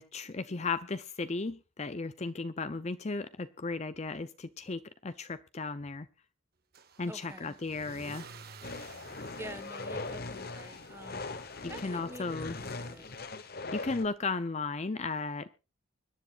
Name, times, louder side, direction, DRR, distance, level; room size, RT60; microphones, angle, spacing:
voice 1, 0.0-6.1 7.0-8.3 11.6-12.5 13.7-15.5, left 3 dB, 35° left, 13 dB, 0.6 m, -35 dB
Car / Engine starting / Accelerating revving vroom, 6.7-13.9, right 4 dB, 50° right, 1.6 m, -54 dB
voice 2, 7.1-7.6 9.4-11.3 11.7-13.1, right 1 dB, 15° right, 11 dB, 1.4 m, -47 dB
sound 1, 8.6-14.0, left 3 dB, 50° left, 1.2 m, -40 dB
25.0 x 10.5 x 2.5 m, 0.30 s
head